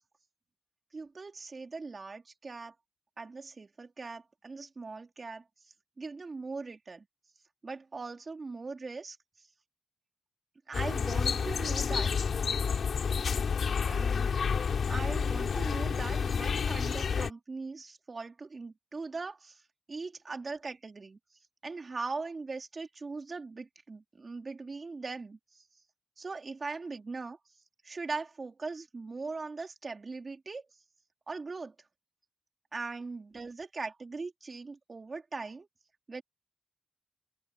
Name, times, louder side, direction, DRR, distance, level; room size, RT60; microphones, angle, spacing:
voice 1, 0.9-2.7 3.2-7.0 7.6-9.2 10.7-12.1 13.8-14.3 14.9-19.6 19.9-21.2 21.6-25.6 26.2-27.4 27.8-30.6 31.3-31.7 32.7-35.7 36.1-36.2, right 4 dB, 45° right, 3.2 m, -40 dB
sound 1, 10.7-17.3, left 6 dB, 75° left, 2.4 m, -29 dB
open air
cardioid pair, 60°, 0 cm